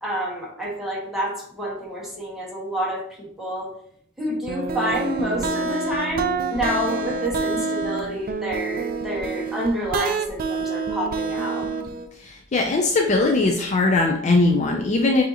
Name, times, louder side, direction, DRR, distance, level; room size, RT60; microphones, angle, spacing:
voice 1, 0.0-3.7 4.2-11.7, equal, ahead, -5 dB, 1.4 m, -28 dB
sound 1, 4.5-12.1, right 4 dB, 45° right, 0.4 m, -27 dB
voice 2, 12.2-15.2, left 3 dB, 35° left, 2 dB, 0.4 m, -20 dB
6.8 x 2.7 x 2.8 m, 0.67 s
head